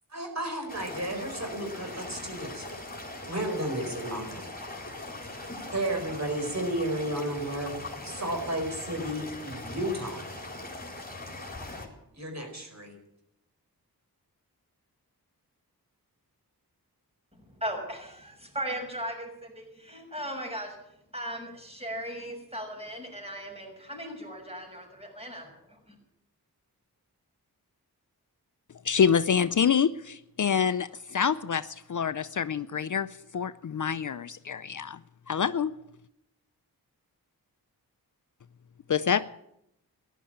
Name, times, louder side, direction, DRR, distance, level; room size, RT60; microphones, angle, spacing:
voice 1, 0.1-2.7 3.3-4.5 5.7-10.2 12.1-13.0, right 1 dB, 45° right, 4.7 m, -33 dB
sound 1, 0.7-11.9, left 2 dB, 25° left, 4.0 m, -40 dB
voice 2, 17.4-20.8 21.1-25.9, equal, 15° right, 6.2 m, -37 dB
voice 3, 28.8-33.1 33.3-35.0 35.3-35.7 38.9-39.3, left 7 dB, 50° left, 0.5 m, -26 dB
14.5 x 11.5 x 8.8 m
cardioid pair, 50°, 38 cm